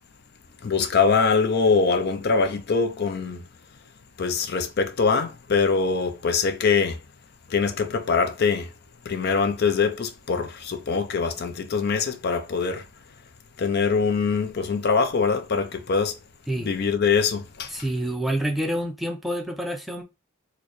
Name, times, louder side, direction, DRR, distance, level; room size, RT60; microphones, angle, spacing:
voice 1, 0.6-3.4 4.2-7.0 7.5-8.7 9.1-12.9 13.6-16.2 16.6-17.7, left 5 dB, 50° left, 0.5 m, -23 dB
voice 2, 17.7-20.0, right 1 dB, ahead, 0.5 m, -27 dB
4.4 x 2.2 x 3.0 m
head